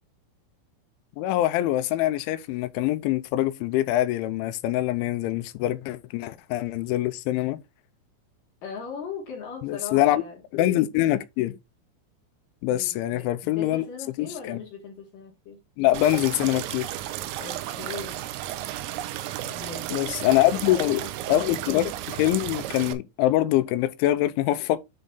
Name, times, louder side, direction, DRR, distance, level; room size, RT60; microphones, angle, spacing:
voice 1, 1.2-7.6 9.6-10.2 10.5-11.6 12.6-13.9 14.2-14.6 15.8-16.9 19.9-21.0 21.3-24.8, left 14 dB, 85° left, 2.9 m, -24 dB
voice 2, 8.6-10.4 12.7-15.6 17.4-18.2 19.4-20.2 20.5-21.4, left 6 dB, 60° left, 2.4 m, -39 dB
sound 1, 15.9-22.9, right 13 dB, 85° right, 3.4 m, -33 dB
10.0 x 4.0 x 3.8 m
omnidirectional pair, 5.8 m